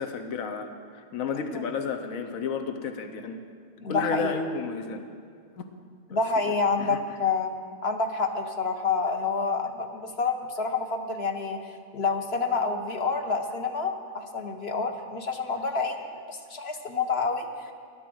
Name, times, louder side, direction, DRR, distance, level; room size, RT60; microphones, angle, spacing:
voice 1, 0.0-3.4 3.9-5.0 5.6-5.7 6.1-6.2 6.8-7.0, left 5 dB, 80° left, 7 dB, 1.3 m, -32 dB
voice 2, 3.8-4.3 6.1-7.5 7.8-17.5, left 4 dB, 50° left, 5 dB, 1.3 m, -28 dB
12.5 x 11.5 x 7.8 m, 2.2 s
omnidirectional pair, 1.4 m